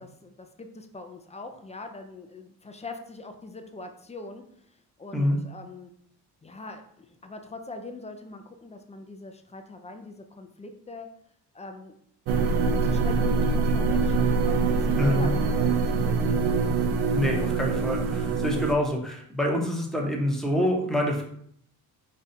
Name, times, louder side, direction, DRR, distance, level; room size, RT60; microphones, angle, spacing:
voice 1, 0.0-5.9 6.4-11.1 11.5-11.9 12.8-16.6, left 3 dB, 20° left, 5 dB, 0.4 m, -42 dB
sound 1, 12.3-18.7, right 4 dB, 80° right, 0.5 m, -24 dB
voice 2, 15.0-15.3 17.1-21.2, left 1 dB, ahead, -1 dB, 0.8 m, -26 dB
5.2 x 2.3 x 4.1 m, 0.68 s
cardioid pair, 120°, 38 cm